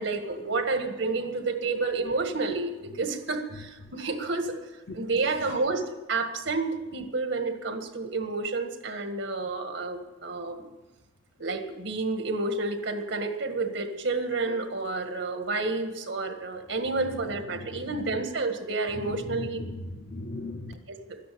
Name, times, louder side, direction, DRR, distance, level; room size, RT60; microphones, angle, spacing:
voice 1, 0.0-4.5 4.9-10.7 11.4-19.6, right 3 dB, 70° right, 6 dB, 1.8 m, -30 dB
voice 2, 17.5-18.2 18.9-20.7, left 2 dB, 50° left, 1 dB, 1.0 m, -38 dB
13.0 x 10.5 x 8.7 m, 1.1 s
head